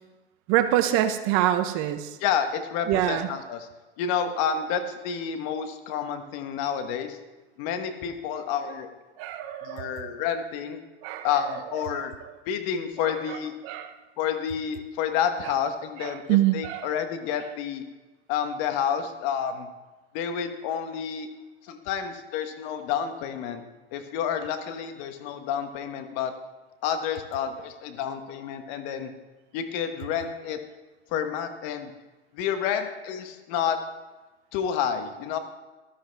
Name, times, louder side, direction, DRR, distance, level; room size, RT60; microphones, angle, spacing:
voice 1, 0.5-2.2 2.9-3.3 9.2-10.1 11.0-11.3 11.9-12.3 13.0-13.9 16.0-16.9, right 13 dB, 45° right, 9 dB, 0.8 m, -26 dB
voice 2, 2.2-3.7 4.0-7.2 7.6-8.9 9.6-10.8 11.2-12.1 12.5-13.5 14.2-17.8 18.3-19.7 20.1-21.3 21.6-23.6 23.9-26.3 26.8-29.1 29.5-30.6 31.1-31.9 32.3-33.8 34.5-35.4, left 8 dB, 45° left, 8 dB, 1.3 m, -29 dB
12.0 x 12.0 x 3.4 m, 1.2 s
hypercardioid pair, 120°, 32 cm